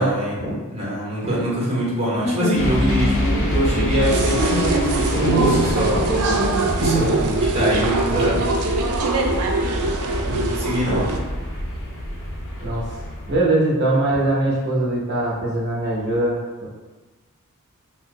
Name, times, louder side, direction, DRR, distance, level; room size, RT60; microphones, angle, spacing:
voice 1, 0.0-6.0 6.8-8.4 10.2-11.1, equal, 30° right, -6 dB, 1.2 m, -23 dB
sound 1, 2.2-7.2, right 1 dB, 10° left, 0.9 m, -26 dB
sound 2, 2.6-13.4, equal, 60° left, 0.6 m, -26 dB
sound 3, 4.0-11.2, right 3 dB, 75° right, 0.4 m, -23 dB
voice 2, 13.3-16.7, right 2 dB, 50° right, -3 dB, 0.7 m, -21 dB
2.7 x 2.3 x 3.7 m, 1.3 s
head